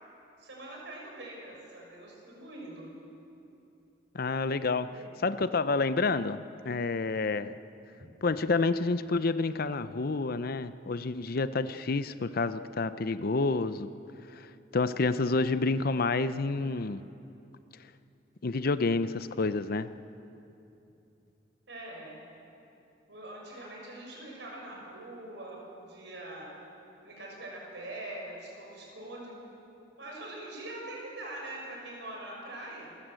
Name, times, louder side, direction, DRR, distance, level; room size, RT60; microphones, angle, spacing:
voice 1, 0.4-2.9 4.8-5.1 21.7-22.2 23.1-26.5 27.0-29.4 30.0-32.9, right 1 dB, 70° right, -1 dB, 6.5 m, -43 dB
voice 2, 4.1-4.9 5.2-7.6 8.2-13.9 14.4-14.5 14.7-17.0 18.4-19.9, left 3 dB, 55° left, 13 dB, 0.6 m, -29 dB
27.5 x 14.5 x 7.7 m, 2.8 s
head